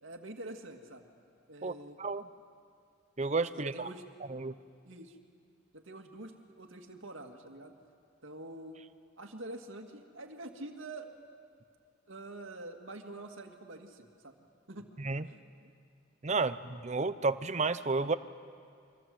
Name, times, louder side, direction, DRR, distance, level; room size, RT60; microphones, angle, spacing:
voice 1, 0.0-1.1 1.5-2.0 3.5-4.0 4.8-5.2 5.7-7.7 8.2-8.8 9.2-11.1 12.1-14.9 15.3-15.7, right 2 dB, 75° right, 4 dB, 2.2 m, -46 dB
voice 2, 3.2-3.9 4.3-4.5 15.0-15.3 16.2-18.1, right 3 dB, 35° right, 12 dB, 0.7 m, -31 dB
29.5 x 24.5 x 7.8 m, 2.3 s
head